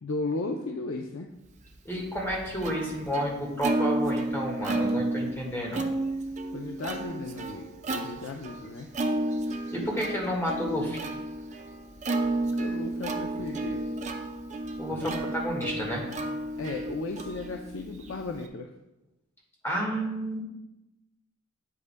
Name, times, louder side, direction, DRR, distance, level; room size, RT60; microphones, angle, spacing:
voice 1, 0.0-1.3 6.5-8.9 12.6-13.9 16.6-18.7, left 3 dB, 75° left, 2 dB, 0.5 m, -35 dB
Plucked string instrument, 1.7-18.5, right 2 dB, 35° right, 0.6 m, -32 dB
voice 2, 1.8-5.8 9.7-11.0 14.8-16.0 19.6-20.4, equal, 10° left, -2 dB, 1.6 m, -30 dB
8.5 x 8.2 x 2.2 m, 0.95 s
head